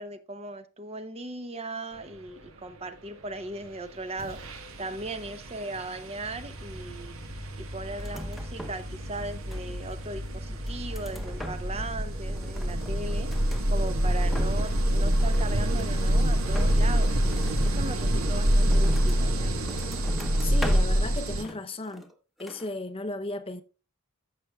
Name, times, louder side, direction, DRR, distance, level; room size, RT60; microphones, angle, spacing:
voice 1, 0.0-4.4 4.8-7.2 7.6-13.3 13.7-17.1 17.6-19.6, right 2 dB, 30° right, 0.8 m, -38 dB
sound 1, 3.6-3.8 4.2-21.4, equal, 65° right, 1.4 m, -27 dB
sound 2, 6.2-16.2, right 1 dB, 50° right, 2.9 m, -43 dB
sound 3, 7.9-8.9 9.2-10.0 10.5-11.9 12.2-13.7 14.1-14.8 15.1-16.0 16.5-19.3 19.7-21.1 21.4-22.1 22.4-22.7, equal, ahead, 1.0 m, -40 dB
voice 2, 20.4-22.1 22.4-23.6, left 2 dB, 25° left, 0.7 m, -35 dB
14.0 x 6.5 x 2.3 m
head